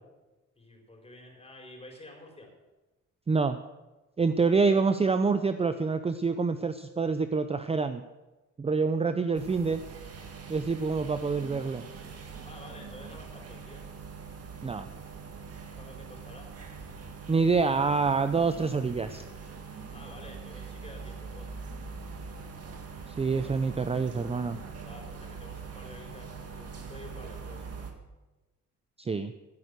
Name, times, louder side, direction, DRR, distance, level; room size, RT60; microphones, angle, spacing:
voice 1, 0.6-2.5 12.4-13.9 15.8-16.5 19.9-21.5 24.8-27.6, left 2 dB, 20° left, 1 dB, 4.6 m, -49 dB
voice 2, 3.3-3.6 4.2-8.0 8.6-9.8 10.5-11.9 14.6-14.9 17.3-19.2 23.2-24.6 29.0-29.3, right 4 dB, 20° right, 10 dB, 0.6 m, -26 dB
sound 1, 9.3-27.9, right 5 dB, 50° right, 2.0 m, -43 dB
14.5 x 9.0 x 6.8 m, 1.1 s
cardioid pair, 90°, 30 cm